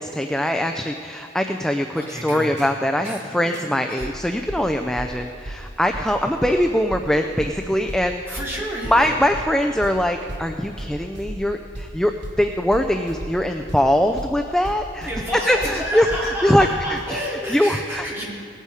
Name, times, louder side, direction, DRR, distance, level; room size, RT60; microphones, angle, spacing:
voice 1, 0.0-8.4 8.8-12.1 12.4-16.1 16.4-17.2 17.5-18.1, equal, 5° left, 5 dB, 0.4 m, -22 dB
voice 2, 1.9-2.5 3.0-3.5 3.9-4.1 8.3-9.1 15.1-18.2, equal, 15° right, -6 dB, 3.0 m, -30 dB
sound 1, 2.6-2.7 3.0-3.2 3.5-3.7 4.0-4.1 4.5-4.6 5.0-5.1 5.5-5.6 5.9-6.0 6.4-6.5 6.9-7.0 7.4-7.5 7.9-17.1, right 1 dB, 65° right, 1.5 m, -36 dB
18.0 x 8.3 x 4.9 m, 2.7 s
head